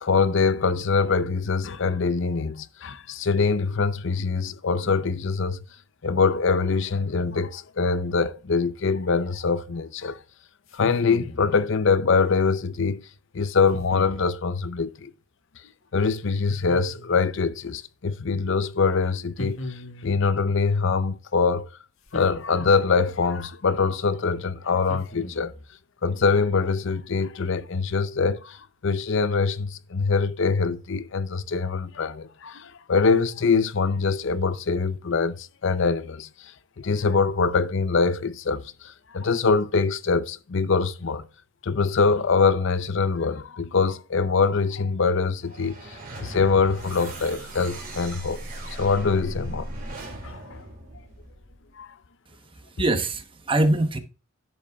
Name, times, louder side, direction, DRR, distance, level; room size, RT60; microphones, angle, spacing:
voice 1, 0.0-5.6 6.0-10.2 10.7-13.0 13.3-15.1 15.9-21.7 22.1-25.5 26.0-36.5 36.8-41.3 41.6-48.4 48.8-49.7 50.2-50.6 51.8-51.9, left 4 dB, 60° left, 0.6 m, -24 dB
sound 1, 10.7-11.5 13.7-14.3 16.5-17.3 19.4-20.2 22.1-23.0 24.9-25.6, left 1 dB, 85° left, 1.7 m, -38 dB
sound 2, 45.4-51.7, right 1 dB, 45° right, 3.9 m, -38 dB
voice 2, 52.3-54.0, right 2 dB, 25° right, 1.0 m, -24 dB
11.0 x 7.6 x 2.3 m
head